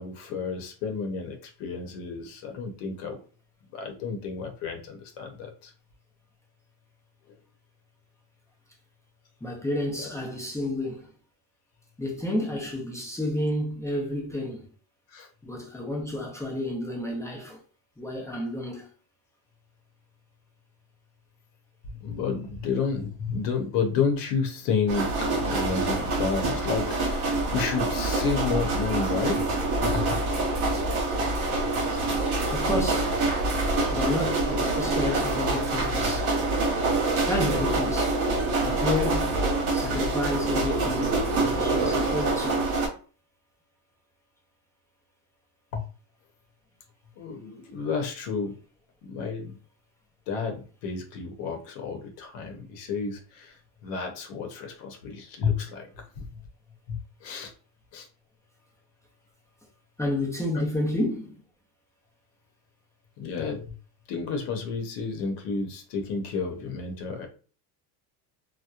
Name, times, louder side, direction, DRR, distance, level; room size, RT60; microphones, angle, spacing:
voice 1, 0.0-3.2 3.7-5.7 10.0-10.1 15.1-15.3 21.9-29.4 29.8-30.1 45.7-45.8 47.2-48.5 49.0-49.6 50.3-53.6 53.8-55.9 56.2-56.3 56.9-57.5 57.9-58.1 60.5-60.6 63.2-63.7 64.1-67.3, left 5 dB, 70° left, 0.8 m, -31 dB
voice 2, 9.4-11.1 12.0-14.7 15.4-17.6 18.0-18.9 32.5-33.2 33.9-36.3 37.2-38.2 38.6-39.4 39.7-42.6 60.0-61.4, left 1 dB, 5° left, 0.5 m, -30 dB
sound 1, 24.9-42.9, right 2 dB, 55° right, 1.0 m, -26 dB
2.8 x 2.1 x 2.3 m
supercardioid pair, 125°, 44 cm